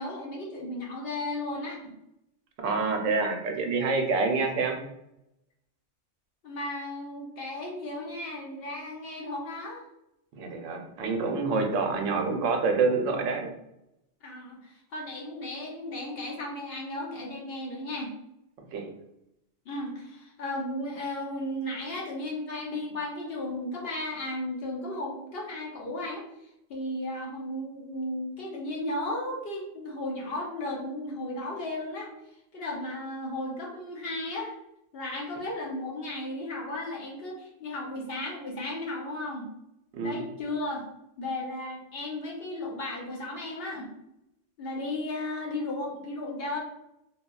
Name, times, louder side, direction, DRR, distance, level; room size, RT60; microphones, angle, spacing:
voice 1, 0.0-1.8 6.4-9.8 14.2-18.1 19.7-26.2 26.7-32.1 32.5-34.5 34.9-39.5 40.0-40.8 41.2-43.9 44.6-46.6, left 1 dB, 60° left, -2 dB, 0.8 m, -35 dB
voice 2, 2.6-4.8 10.3-13.5 18.7-18.9 40.0-40.2, right 4 dB, 85° right, 3 dB, 0.9 m, -27 dB
3.2 x 2.2 x 2.3 m, 0.82 s
omnidirectional pair, 1.3 m